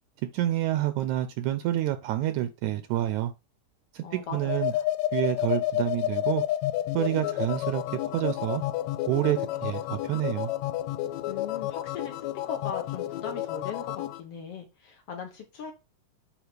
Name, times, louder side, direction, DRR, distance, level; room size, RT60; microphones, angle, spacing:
voice 1, 0.3-3.3 3.9-4.7 5.1-6.4 6.9-7.8 8.1-8.6 9.1-10.5, right 13 dB, 80° right, 1.9 m, -28 dB
voice 2, 4.0-4.8 11.3-12.2 12.5-15.7, left 6 dB, 60° left, 1.8 m, -39 dB
sound 1, 4.4-14.2, left 14 dB, 80° left, 1.6 m, -30 dB
8.0 x 3.5 x 5.0 m
omnidirectional pair, 3.6 m